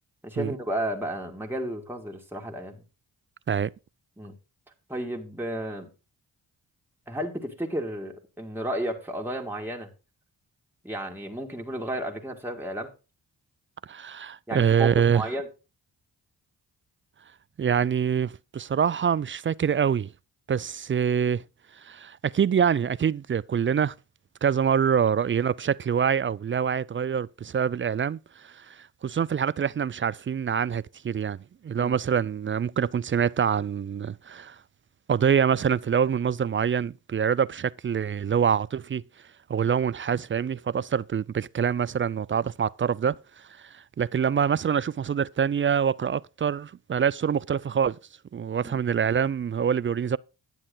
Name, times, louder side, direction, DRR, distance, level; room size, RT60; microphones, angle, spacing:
voice 1, 0.2-2.8 4.2-4.3 4.9-5.9 7.1-9.9 10.8-12.9 14.5-15.5 31.8-32.0 48.6-48.8, right 1 dB, 5° right, 2.0 m, -32 dB
voice 2, 13.8-15.2 17.6-20.1 20.5-21.4 21.8-23.9 24.4-31.4 31.6-34.6 35.1-39.0 39.5-43.1 43.6-48.0 48.3-50.2, right 7 dB, 30° right, 0.4 m, -25 dB
10.0 x 7.5 x 3.9 m
supercardioid pair, 45°, 43 cm